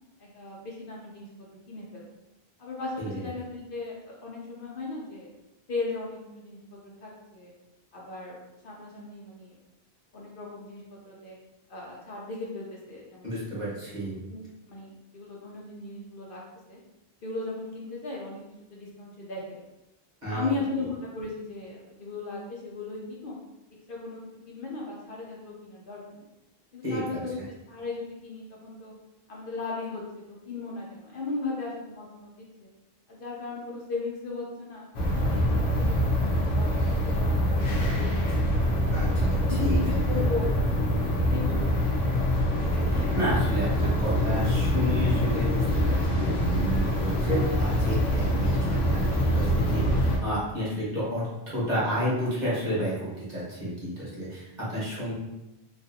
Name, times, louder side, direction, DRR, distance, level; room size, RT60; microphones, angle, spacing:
voice 1, 0.2-1.3 1.7-2.1 2.6-5.3 5.7-7.5 7.9-9.5 10.1-11.4 11.7-13.7 14.3-16.4 16.7-16.8 17.2-18.4 18.7-19.6 20.3-23.3 23.9-24.2 24.5-26.3 26.7-27.3 27.7-28.9 29.3-30.0 30.3-32.7 33.1-34.9 35.2-38.9 39.5-40.5 41.2-41.9, left 3 dB, 60° left, -4 dB, 0.8 m, -37 dB
voice 2, 13.2-14.2 20.2-20.6 26.8-27.2 38.9-39.8 40.1-40.2 42.6-55.1, equal, 45° right, -8 dB, 1.4 m, -31 dB
sound 1, 34.9-50.2, equal, 85° left, 1.0 m, -25 dB
3.1 x 2.6 x 2.7 m, 0.94 s
omnidirectional pair, 1.0 m